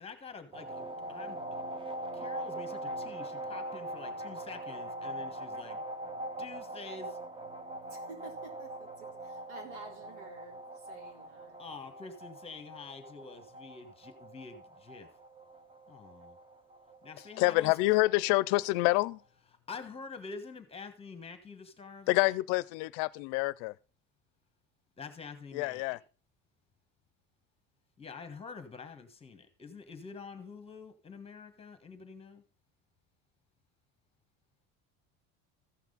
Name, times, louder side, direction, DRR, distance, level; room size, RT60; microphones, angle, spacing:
voice 1, 0.0-1.4 2.1-5.8 6.4-7.2 11.6-15.1 15.9-16.4 17.0-17.7 19.7-22.3 25.0-25.8 28.0-32.4, left 4 dB, 15° left, 1.3 m, -47 dB
sound 1, 0.5-19.1, right 1 dB, 15° right, 0.7 m, -42 dB
voice 2, 7.9-11.6, right 2 dB, 90° right, 3.9 m, -50 dB
voice 3, 17.4-19.2 22.1-23.7 25.5-26.0, left 20 dB, 75° left, 0.5 m, -27 dB
15.0 x 5.9 x 4.0 m
cardioid pair, 135°, 35 cm